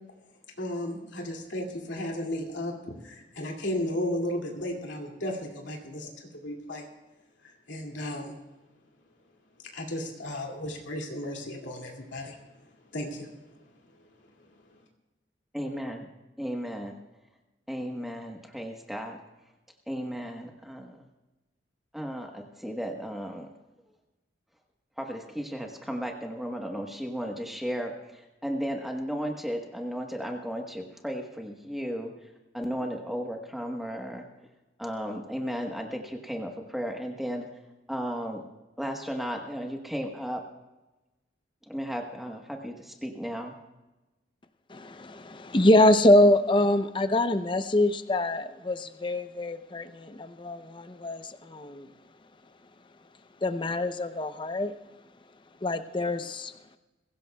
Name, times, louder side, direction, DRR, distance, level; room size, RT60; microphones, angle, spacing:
voice 1, 0.6-6.8 7.4-8.3 9.7-12.4 12.9-14.8, left 1 dB, 90° left, 0 dB, 2.4 m, -35 dB
voice 2, 15.5-16.1 16.4-16.9 17.7-19.2 19.9-21.0 21.9-23.5 25.0-32.1 32.5-34.2 34.8-37.4 37.9-38.4 38.8-40.4 41.7-43.5, equal, ahead, 2 dB, 1.1 m, -34 dB
voice 3, 44.7-51.9 53.4-54.7 55.6-56.5, left 1 dB, 25° left, 10 dB, 0.6 m, -24 dB
22.0 x 16.5 x 2.3 m, 1.1 s
head